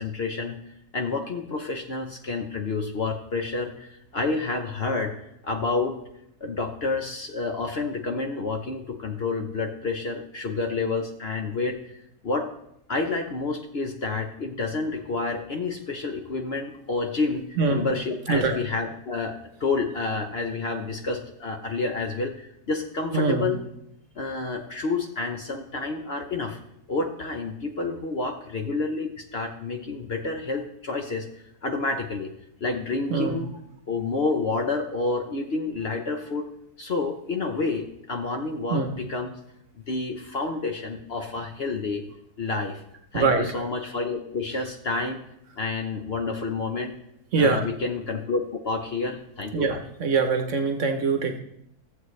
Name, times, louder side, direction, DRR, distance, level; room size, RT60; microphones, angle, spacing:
voice 1, 0.0-5.1 5.4-6.0 6.4-12.5 12.9-23.6 24.2-26.6 26.9-31.3 31.6-32.3 32.6-33.5 33.9-36.5 36.8-39.3 39.9-42.1 42.4-42.8 43.1-45.2 45.6-46.9 47.4-49.8, left 3 dB, 50° left, 4 dB, 0.8 m, -29 dB
voice 2, 23.1-23.5 33.1-33.4 38.7-38.9 43.1-43.6 47.3-47.6 49.5-51.4, right 4 dB, 55° right, 5 dB, 1.1 m, -23 dB
14.5 x 7.8 x 3.2 m, 0.77 s
omnidirectional pair, 1.7 m